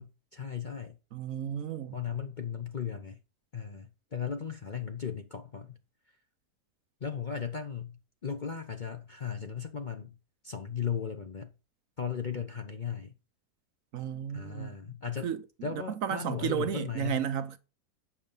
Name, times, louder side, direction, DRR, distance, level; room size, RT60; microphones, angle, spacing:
voice 1, 0.0-1.0 1.9-3.2 3.5-5.8 7.0-10.2 10.4-11.5 12.0-13.1 14.3-15.3 15.6-17.2, left 7 dB, 40° left, 0.7 m, -36 dB
voice 2, 1.1-2.0 13.9-14.7 15.2-17.6, right 9 dB, 65° right, 1.0 m, -33 dB
8.5 x 6.6 x 5.4 m
omnidirectional pair, 1.7 m